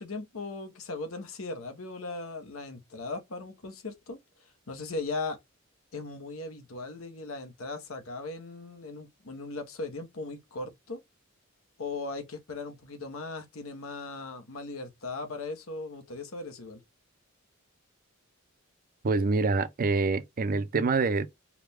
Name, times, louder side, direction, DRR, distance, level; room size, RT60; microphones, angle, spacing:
voice 1, 0.0-4.2 4.7-5.4 5.9-11.0 11.8-16.8, left 3 dB, 80° left, 0.9 m, -38 dB
voice 2, 19.0-21.3, right 3 dB, 45° right, 0.5 m, -26 dB
4.6 x 2.2 x 3.5 m
head